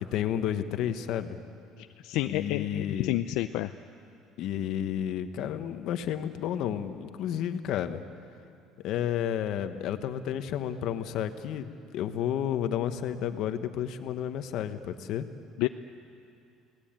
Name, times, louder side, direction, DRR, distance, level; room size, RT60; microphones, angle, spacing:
voice 1, 0.1-1.4 2.2-3.1 4.4-8.0 8.8-11.7 11.9-15.3, left 10 dB, 55° left, 9 dB, 1.3 m, -31 dB
voice 2, 1.8-3.7 15.6-15.7, left 15 dB, 75° left, 8 dB, 0.6 m, -30 dB
29.5 x 18.0 x 9.0 m, 2.5 s
cardioid pair, 165°, 0 cm